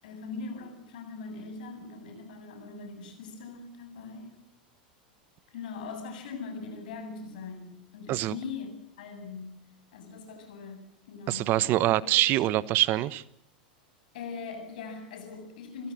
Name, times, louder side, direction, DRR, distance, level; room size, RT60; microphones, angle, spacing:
voice 1, 0.0-4.4 5.5-9.6 9.9-12.2 14.1-15.9, left 4 dB, 70° left, 6 dB, 7.9 m, -41 dB
voice 2, 11.3-13.2, right 15 dB, 45° right, 17 dB, 1.1 m, -24 dB
29.0 x 16.5 x 7.6 m, 0.76 s
hypercardioid pair, 100°, 5 cm